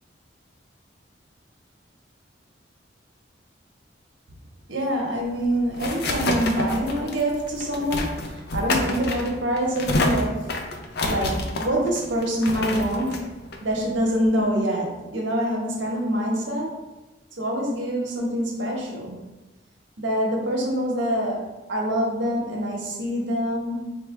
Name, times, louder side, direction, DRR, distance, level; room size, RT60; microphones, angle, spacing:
voice 1, 4.7-10.6 11.1-16.8 17.4-19.3 20.0-24.0, equal, 85° right, -1 dB, 0.9 m, -25 dB
sound 1, 5.2-14.5, left 2 dB, 60° left, 0.4 m, -29 dB
4.5 x 2.3 x 3.1 m, 1.1 s
head